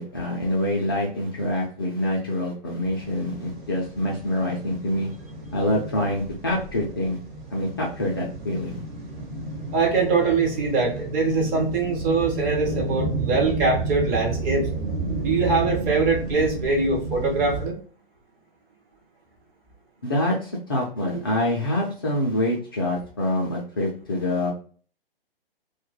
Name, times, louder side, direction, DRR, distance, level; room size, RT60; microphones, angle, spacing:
voice 1, 0.0-5.1 5.5-7.2 7.5-8.8 20.0-24.5, left 1 dB, 25° left, -3 dB, 0.3 m, -26 dB
sound 1, 3.0-17.7, right 2 dB, 50° right, 1.1 m, -31 dB
voice 2, 9.7-14.7 15.2-17.7 21.0-21.1, right 4 dB, 20° right, -1 dB, 0.6 m, -23 dB
2.2 x 2.1 x 3.0 m, 0.41 s
figure-of-eight pair, 130°, 29 cm